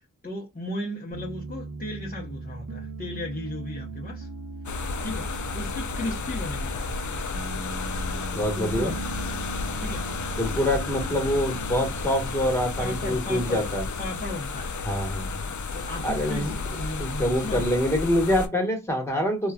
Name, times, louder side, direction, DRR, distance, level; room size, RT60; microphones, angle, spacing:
voice 1, 0.2-4.3 5.0-5.3 5.5-7.2 8.6-9.0 9.8-10.0 10.6-10.8 12.8-13.7 14.0-14.7 15.7-17.7, left 1 dB, 25° left, 0.9 m, -35 dB
Piano, 1.1-13.6, right 3 dB, 80° right, 0.6 m, -39 dB
sound 1, 4.6-18.5, left 4 dB, 65° left, 0.5 m, -32 dB
voice 2, 8.3-8.9 10.4-13.8 14.8-15.3 16.0-16.6 17.0-19.5, equal, 10° left, 1.3 m, -25 dB
3.0 x 2.4 x 2.2 m
cardioid pair, 45°, 32 cm